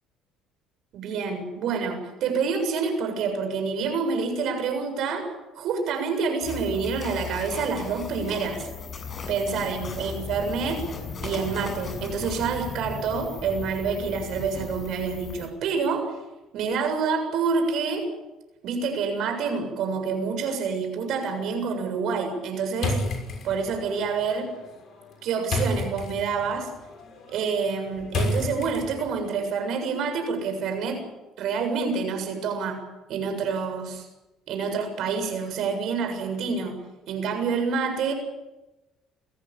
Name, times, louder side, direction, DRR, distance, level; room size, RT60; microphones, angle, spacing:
voice 1, 0.9-5.3 5.6-8.6 9.3-10.8 11.2-16.2 16.5-18.1 18.6-23.0 23.4-24.5 25.2-26.7 27.3-31.0 31.4-32.8 33.1-34.1 34.5-36.7 37.1-38.1, right 5 dB, 65° right, 6 dB, 7.2 m, -27 dB
sound 1, 6.4-15.5, left 5 dB, 40° left, 7.7 m, -36 dB
sound 2, 22.8-29.3, left 2 dB, 55° left, 6.5 m, -32 dB
28.5 x 15.5 x 8.9 m, 1.0 s
supercardioid pair, 70°, 0 cm